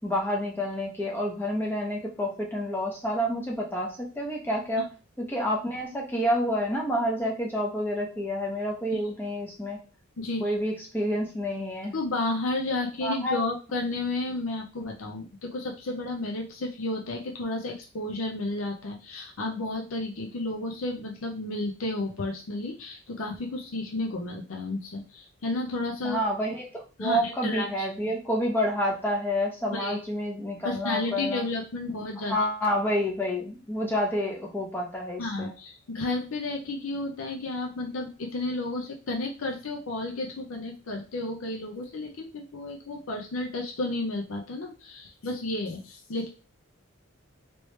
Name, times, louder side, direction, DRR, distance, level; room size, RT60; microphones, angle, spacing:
voice 1, 0.0-4.9 5.2-9.8 10.4-11.9 13.0-13.4 26.0-26.6 27.0-31.4 32.3-35.5, equal, 10° left, -2 dB, 0.8 m, -29 dB
voice 2, 10.2-10.5 11.9-26.2 27.0-27.9 29.7-30.0 30.6-32.3 35.2-46.3, left 2 dB, 75° left, 1 dB, 0.6 m, -32 dB
3.1 x 3.0 x 3.1 m, 0.34 s
head